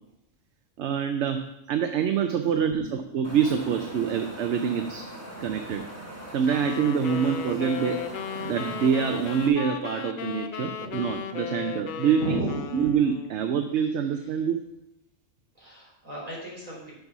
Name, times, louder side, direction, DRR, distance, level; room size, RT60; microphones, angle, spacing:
voice 1, 0.8-2.8 3.1-5.0 5.4-5.8 6.3-8.0 8.4-12.4 12.7-14.6, right 7 dB, 65° right, 7 dB, 0.9 m, -26 dB
Wind, 3.2-9.5, right 1 dB, 10° right, 1.1 m, -41 dB
sound 1, 6.5-13.4, left 7 dB, 60° left, 0.5 m, -35 dB
voice 2, 12.2-12.6 15.6-16.9, right 1 dB, 30° right, -6 dB, 3.9 m, -33 dB
7.0 x 5.4 x 6.0 m, 0.82 s
omnidirectional pair, 1.4 m